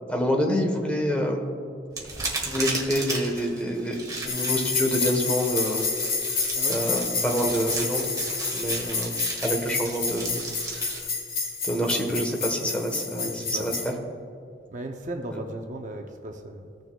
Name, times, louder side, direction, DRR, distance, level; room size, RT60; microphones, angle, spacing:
voice 1, 0.1-1.4 2.5-5.9 6.7-8.1 8.5-10.4 10.7-10.9 11.6-13.9 15.3-15.4, equal, 5° left, 1 dB, 1.1 m, -27 dB
sound 1, 1.9-11.0, right 3 dB, 20° right, 1.7 m, -35 dB
sound 2, 4.3-13.9, left 4 dB, 50° left, 1.6 m, -29 dB
voice 2, 13.1-13.7 14.7-16.7, right 1 dB, 45° right, 4 dB, 0.7 m, -36 dB
16.0 x 6.6 x 2.3 m, 2.4 s
head